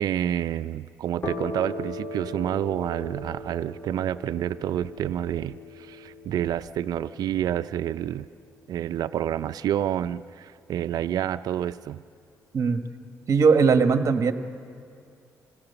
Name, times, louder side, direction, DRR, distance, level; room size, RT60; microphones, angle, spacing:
voice 1, 0.0-8.3 8.7-12.0, right 11 dB, 75° right, 13 dB, 0.4 m, -28 dB
sound 1, 1.2-8.7, left 1 dB, 30° left, 3.2 m, -39 dB
voice 2, 13.3-14.3, right 5 dB, 50° right, 7 dB, 1.3 m, -19 dB
26.5 x 17.5 x 6.8 m, 2.4 s
cardioid pair, 85°, 7 cm